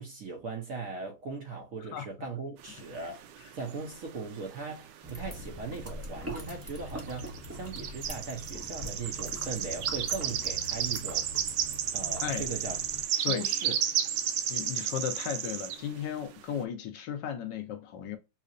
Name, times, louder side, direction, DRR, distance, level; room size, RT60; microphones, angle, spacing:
voice 1, 0.0-11.3 11.9-12.8 13.1-13.8, right 4 dB, 55° right, 1.0 m, -39 dB
sound 1, 2.6-4.3 4.6-5.8 6.1-6.3 6.9-15.8, right 9 dB, 75° right, 1.2 m, -32 dB
sound 2, 5.0-13.0, equal, 15° right, 0.5 m, -43 dB
voice 2, 14.5-18.2, left 8 dB, 75° left, 1.2 m, -35 dB
5.5 x 2.0 x 2.4 m
omnidirectional pair, 2.1 m